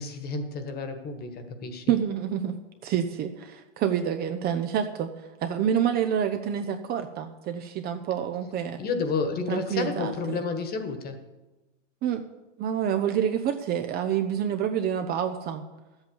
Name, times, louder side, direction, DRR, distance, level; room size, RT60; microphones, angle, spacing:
voice 1, 0.0-2.0 8.8-11.2, left 4 dB, 25° left, 7 dB, 1.6 m, -31 dB
voice 2, 1.9-2.5 2.8-5.1 5.4-8.8 9.5-10.4 12.0-12.2 12.6-15.6, right 9 dB, 25° right, 7 dB, 0.7 m, -27 dB
12.0 x 8.1 x 7.1 m, 1.1 s
hypercardioid pair, 125°, 36 cm